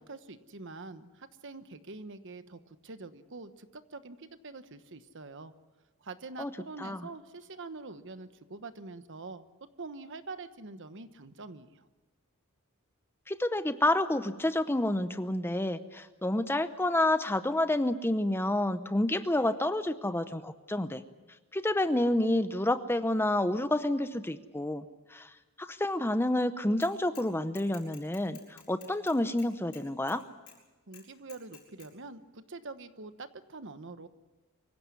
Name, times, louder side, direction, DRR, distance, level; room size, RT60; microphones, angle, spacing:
voice 1, 0.0-5.5 6.0-9.5 9.8-11.8 30.9-34.1, right 3 dB, 55° right, 11 dB, 1.1 m, -45 dB
voice 2, 13.3-21.0 21.5-24.8 25.1-25.3 25.6-30.2, left 1 dB, 10° left, 11 dB, 0.7 m, -29 dB
Bicycle / Mechanisms, 26.8-27.3 27.6-30.2 30.5-30.6 30.9-31.9, left 9 dB, 80° left, 6.2 m, -52 dB
24.5 x 16.5 x 9.6 m, 1.2 s
head